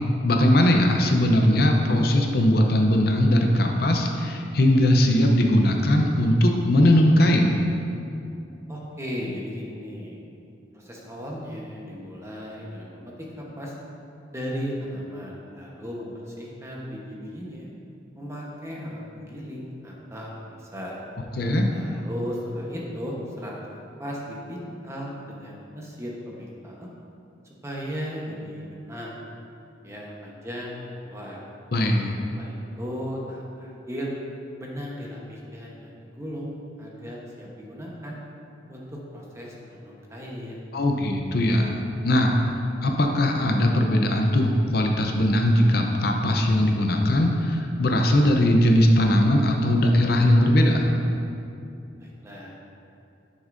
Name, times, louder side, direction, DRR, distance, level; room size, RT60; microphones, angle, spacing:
voice 1, 0.2-7.5 21.4-21.7 31.7-32.1 40.7-41.7 42.0-42.4 42.8-50.9, left 1 dB, 60° left, 2 dB, 0.6 m, -20 dB
voice 2, 8.7-10.2 10.7-13.7 14.3-17.7 18.2-21.0 21.7-26.9 27.4-29.2 29.8-31.4 32.3-34.1 34.6-38.2 38.7-40.7 52.0-52.6, equal, 15° right, -3 dB, 1.0 m, -36 dB
11.0 x 6.3 x 2.6 m, 2.6 s
head